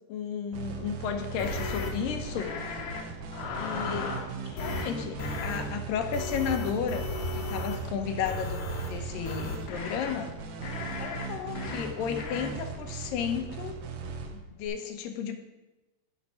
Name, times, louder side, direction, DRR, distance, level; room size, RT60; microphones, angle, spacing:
voice 1, 0.1-2.5 3.6-7.0 7.4-10.3 11.0-13.8 14.3-15.4, left 7 dB, 85° left, 6 dB, 2.6 m, -33 dB
sound 1, 0.5-14.7, right 5 dB, 75° right, 2.4 m, -39 dB
sound 2, 1.4-1.9 2.4-3.0 3.3-4.2 4.6-4.9 5.2-5.6 6.1-7.8 8.2-8.9 9.2-10.1 10.6-11.3 11.6-11.8 12.2-12.5, left 3 dB, 65° left, 1.6 m, -35 dB
11.0 x 4.5 x 5.5 m, 1.1 s
omnidirectional pair, 3.9 m